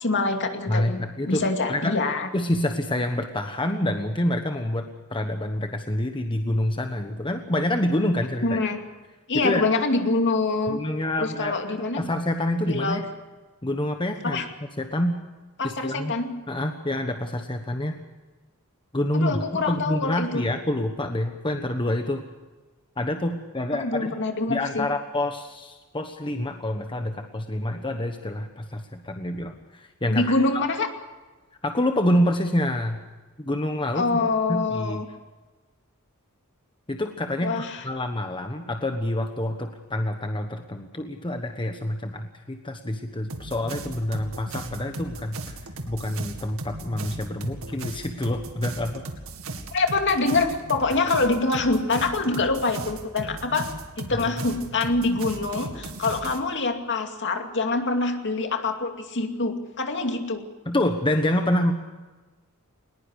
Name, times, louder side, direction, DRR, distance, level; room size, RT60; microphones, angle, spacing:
voice 1, 0.0-1.0 1.3-2.3 8.4-8.8 9.3-10.8 11.2-12.0 12.7-13.0 14.2-14.4 15.6-16.3 19.1-20.4 23.7-24.9 30.1-30.9 33.9-35.1 37.4-37.8 49.7-60.4, left 3 dB, 55° left, 5 dB, 2.5 m, -25 dB
voice 2, 0.7-1.9 2.3-8.6 9.3-9.6 10.7-13.1 13.6-14.4 14.8-15.2 15.6-16.1 16.5-17.9 18.9-22.2 23.0-24.2 24.5-30.3 31.6-33.0 33.4-34.2 34.5-35.0 36.9-45.6 45.9-49.0 54.1-54.3 60.6-61.7, left 1 dB, 20° left, 5 dB, 1.2 m, -27 dB
sound 1, 43.3-56.4, right 2 dB, 70° right, 2.3 m, -37 dB
21.0 x 20.5 x 6.4 m, 1.2 s
head